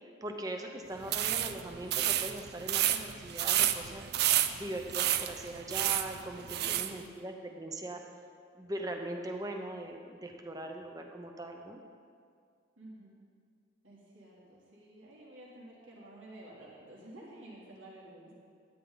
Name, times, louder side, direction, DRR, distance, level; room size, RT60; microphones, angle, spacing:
voice 1, 0.2-4.1 4.5-8.0 8.5-11.8, right 1 dB, 20° right, 3 dB, 0.9 m, -40 dB
sound 1, 1.0-6.9, right 12 dB, 55° right, 0.4 m, -30 dB
voice 2, 6.6-7.1 12.8-13.2 13.8-18.3, right 1 dB, 80° right, -6 dB, 3.2 m, -52 dB
12.5 x 9.4 x 4.0 m, 2.2 s
head